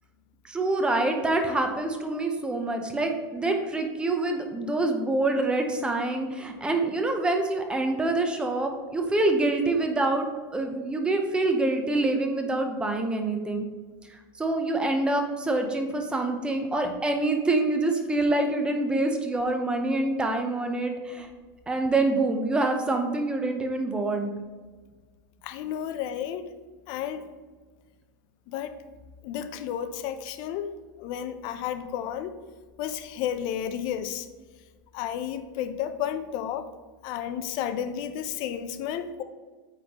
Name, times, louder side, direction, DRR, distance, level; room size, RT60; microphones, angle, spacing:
voice 1, 0.5-10.3 10.5-13.7 14.4-21.3 21.7-24.3, right 2 dB, 10° right, 4 dB, 0.6 m, -26 dB
voice 2, 25.4-26.5 26.9-27.3 28.5-28.8 29.2-30.7 31.0-32.3 32.8-34.3 34.9-36.7 37.0-39.2, left 9 dB, 45° left, 10 dB, 0.5 m, -32 dB
9.0 x 3.8 x 2.9 m, 1.4 s
supercardioid pair, 155°, 11 cm